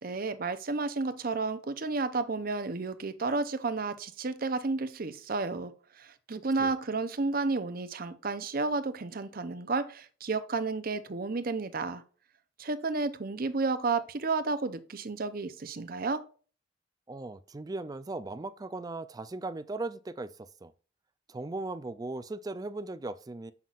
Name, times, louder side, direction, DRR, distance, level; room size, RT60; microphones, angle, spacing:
voice 1, 0.0-12.0 12.6-16.2, right 3 dB, 50° right, 0.7 m, -32 dB
voice 2, 17.1-20.7 21.3-23.5, right 2 dB, 20° right, 0.4 m, -38 dB
7.3 x 5.7 x 2.5 m
head